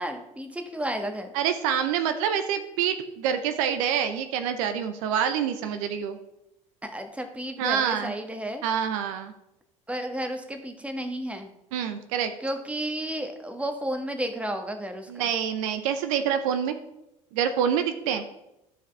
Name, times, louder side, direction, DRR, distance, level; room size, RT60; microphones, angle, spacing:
voice 1, 0.0-1.3 6.8-8.6 9.9-11.5 12.4-15.3, right 1 dB, 5° right, 5 dB, 1.3 m, -32 dB
voice 2, 1.3-6.2 7.6-8.1 8.6-9.3 11.7-12.3 15.1-16.8 17.3-18.2, right 8 dB, 70° right, 8 dB, 0.7 m, -26 dB
13.5 x 4.9 x 3.3 m, 0.86 s
hypercardioid pair, 65°, 18 cm